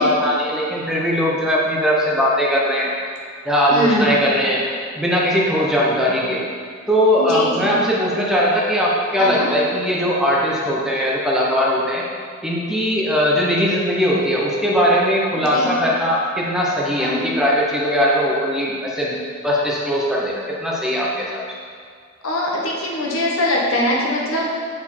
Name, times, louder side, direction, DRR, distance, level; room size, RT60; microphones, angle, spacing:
voice 1, 0.0-2.9 3.4-4.6 5.0-6.4 6.9-12.0 12.4-19.2 19.4-21.4, equal, ahead, -5 dB, 0.8 m, -19 dB
voice 2, 3.7-4.1 7.2-7.7 9.2-9.5 15.5-15.7 17.0-17.3 22.2-24.5, left 1 dB, 75° left, -3 dB, 1.3 m, -22 dB
7.7 x 4.3 x 4.4 m, 2.1 s
head